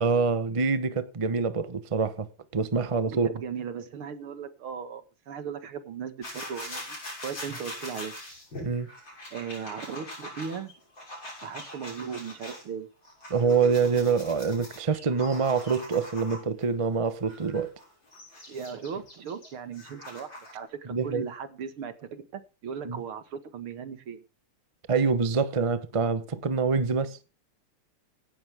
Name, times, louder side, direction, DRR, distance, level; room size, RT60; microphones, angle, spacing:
voice 1, 0.0-2.3 2.5-3.3 8.6-8.9 13.3-17.7 20.9-21.2 22.8-23.0 24.9-27.2, right 5 dB, 35° right, 0.5 m, -25 dB
voice 2, 3.0-8.1 9.3-10.7 11.4-12.9 18.5-24.2, right 7 dB, 75° right, 2.5 m, -37 dB
sound 1, 6.2-12.6 13.0-16.6 17.2-20.6, left 1 dB, 60° left, 7.6 m, -42 dB
17.0 x 11.5 x 3.6 m
omnidirectional pair, 2.4 m